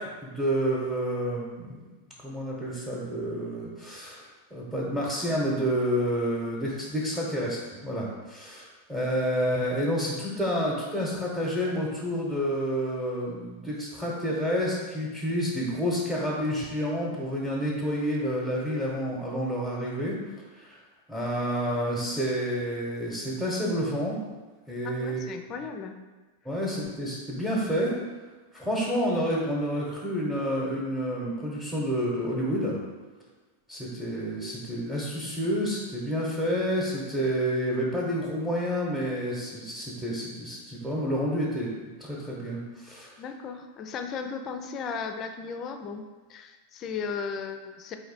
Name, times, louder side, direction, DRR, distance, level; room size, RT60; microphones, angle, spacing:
voice 1, 0.0-1.8 2.2-4.3 4.5-20.2 20.5-20.8 21.1-24.2 24.7-25.2 26.4-28.0 28.5-32.8 33.7-43.1, equal, 10° right, -6 dB, 1.0 m, -29 dB
voice 2, 24.8-26.0 43.2-48.0, left 5 dB, 35° left, 6 dB, 0.4 m, -36 dB
4.1 x 2.7 x 4.1 m, 1.3 s
hypercardioid pair, 95°, 0 cm